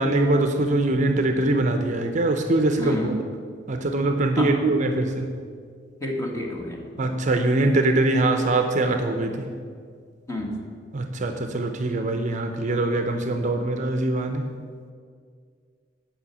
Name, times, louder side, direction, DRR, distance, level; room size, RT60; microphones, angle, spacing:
voice 1, 0.0-3.2 3.7-5.4 7.0-9.6 10.9-14.5, right 2 dB, 40° right, 6 dB, 0.6 m, -23 dB
voice 2, 2.8-3.2 4.4-4.6 6.0-6.9 10.3-10.6, left 1 dB, 15° left, -1 dB, 1.4 m, -29 dB
8.8 x 5.6 x 8.1 m, 2.1 s
head